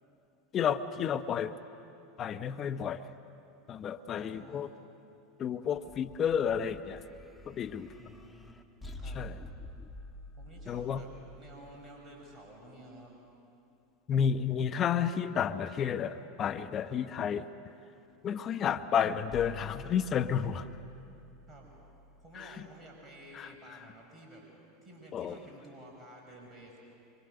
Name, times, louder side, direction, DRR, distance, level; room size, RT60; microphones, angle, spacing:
voice 1, 0.5-1.5 2.2-3.1 3.7-4.7 5.4-7.0 7.5-7.9 9.0-9.4 10.7-11.0 14.1-17.5 18.2-20.7 22.3-22.6 23.3-23.8 25.1-25.4, left 8 dB, 35° left, 10 dB, 0.9 m, -31 dB
voice 2, 4.1-4.7 8.0-8.6 9.0-9.3 10.4-11.1 11.4-13.1 21.5-21.7 22.2-24.4 24.8-26.8, right 1 dB, 25° right, -1 dB, 5.8 m, -52 dB
sound 1, 5.7-13.0 19.3-23.4, left 1 dB, 10° left, 1.6 m, -49 dB
25.0 x 25.0 x 6.7 m, 2.7 s
hypercardioid pair, 85°, 0 cm